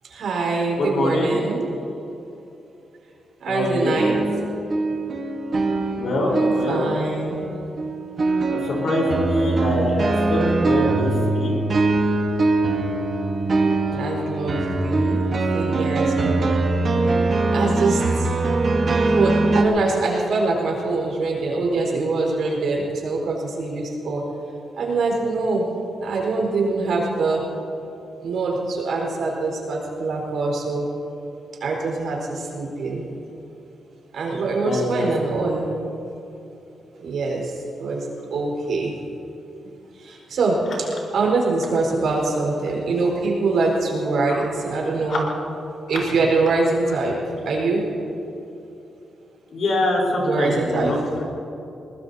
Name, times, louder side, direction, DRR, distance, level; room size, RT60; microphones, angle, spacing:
voice 1, 0.1-1.7 3.4-4.2 6.3-7.5 13.9-15.2 15.5-16.6 17.5-18.3 19.1-24.2 24.8-25.6 26.0-27.4 28.2-30.9 31.6-33.0 34.1-35.7 37.0-37.5 37.8-38.0 38.3-38.9 40.0-45.2 45.9-47.1 47.4-47.9 50.2-50.9, right 3 dB, 65° right, -2 dB, 4.4 m, -24 dB
voice 2, 0.8-1.4 3.5-4.0 5.9-6.9 8.5-11.6 34.6-35.1 44.3-44.4 45.1-45.2 49.5-51.2, left 1 dB, 55° left, -2 dB, 4.2 m, -24 dB
sound 1, 4.0-19.6, right 2 dB, 35° right, 1.2 m, -22 dB
22.0 x 20.5 x 2.8 m, 2.9 s
wide cardioid pair, 175°, 0 cm